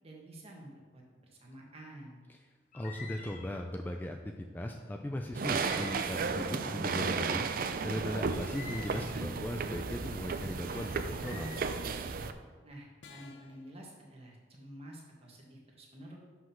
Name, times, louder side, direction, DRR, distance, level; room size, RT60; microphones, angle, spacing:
voice 1, 0.0-2.2 12.6-16.2, right 1 dB, 35° right, -1 dB, 1.5 m, -50 dB
sound 1, 2.7-3.6 5.4-6.5 8.4-9.4 11.1-11.6, left 4 dB, 45° left, 0.9 m, -48 dB
voice 2, 2.7-7.5 7.8-11.6, left 1 dB, 10° left, 3 dB, 0.3 m, -38 dB
sound 2, 4.7-4.9 5.9-6.4 8.3-8.8 10.7-11.3 13.0-13.6, left 5 dB, 75° left, 0.7 m, -55 dB
sound 3, 5.3-12.3, right 5 dB, 50° right, 0.4 m, -34 dB
6.0 x 5.1 x 5.8 m, 1.4 s
head